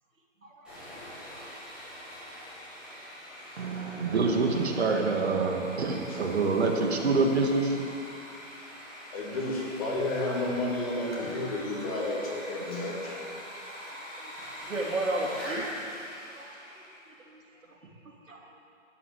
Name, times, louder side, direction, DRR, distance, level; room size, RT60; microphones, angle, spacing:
voice 1, 0.4-1.1 10.2-10.3 11.9-12.0 13.8-14.3 14.6-15.7 16.3-16.4 17.1-17.4 17.7-17.8 18.3-18.5, right 1 dB, 85° right, -1 dB, 3.1 m, -35 dB
Sawing, 0.6-17.1, equal, ahead, 4.0 m, -43 dB
voice 2, 3.6-8.0, right 3 dB, 55° right, 2 dB, 1.7 m, -26 dB
voice 3, 9.1-13.2, left 2 dB, 30° left, -5 dB, 2.9 m, -31 dB
12.5 x 9.6 x 8.1 m, 2.6 s
hypercardioid pair, 165°, 38 cm